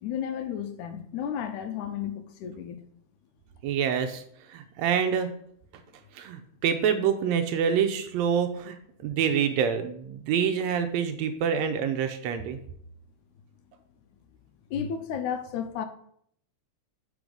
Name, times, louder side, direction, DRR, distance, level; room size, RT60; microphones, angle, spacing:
voice 1, 0.0-2.8 14.7-15.9, left 8 dB, 90° left, 2.1 m, -33 dB
voice 2, 3.6-4.2 4.5-5.3 6.1-8.8 9.0-12.6, right 7 dB, 75° right, 1.8 m, -26 dB
7.0 x 4.8 x 5.2 m
omnidirectional pair, 3.4 m